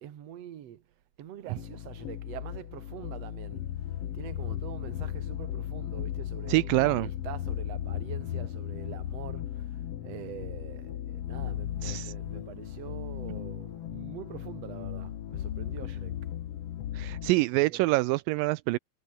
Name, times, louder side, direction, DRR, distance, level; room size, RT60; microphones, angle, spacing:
voice 1, 0.0-3.7 4.1-16.2 17.2-17.9, right 11 dB, 55° right, 2.2 m, -45 dB
sound 1, 1.6-17.3, left 11 dB, 85° left, 1.3 m, -36 dB
voice 2, 6.5-7.1 11.8-12.1 16.9-18.8, right 21 dB, 85° right, 2.0 m, -25 dB
omnidirectional pair, 4.5 m